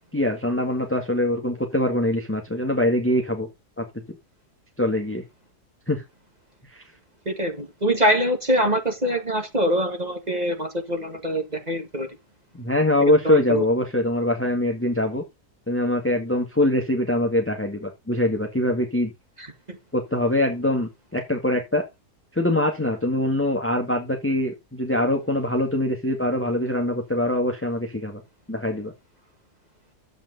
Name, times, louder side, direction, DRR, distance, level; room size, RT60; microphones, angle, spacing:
voice 1, 0.1-3.5 3.8-3.9 4.8-5.2 5.9-6.0 6.7-6.8 12.5-15.2 15.7-19.1 19.9-21.8 22.3-28.2 28.5-28.9, left 1 dB, 10° left, 1.5 m, -23 dB
voice 2, 7.3-12.1 13.2-13.7 19.4-19.8, right 1 dB, 25° right, 1.8 m, -24 dB
10.5 x 8.1 x 3.9 m
omnidirectional pair, 1.7 m